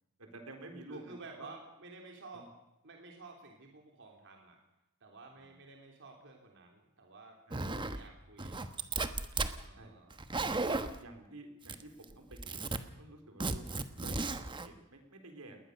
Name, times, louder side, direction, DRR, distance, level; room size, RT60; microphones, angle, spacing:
voice 1, 0.2-1.5 2.3-2.4 5.4-5.5 7.5-8.0 9.8-9.9 10.6-13.7 14.0-14.4 14.6-15.6, right 2 dB, 80° right, 5 dB, 4.3 m, -51 dB
voice 2, 0.9-2.5 2.8-4.6 5.0-8.6 9.5-10.2, right 3 dB, 55° right, 2 dB, 3.5 m, -52 dB
Zipper (clothing), 7.5-8.0 8.4-9.5 10.1-11.0 11.6-12.0 12.3-12.8 13.4-14.7, right 3 dB, 20° right, 1.2 m, -35 dB
20.0 x 20.0 x 6.6 m, 0.91 s
head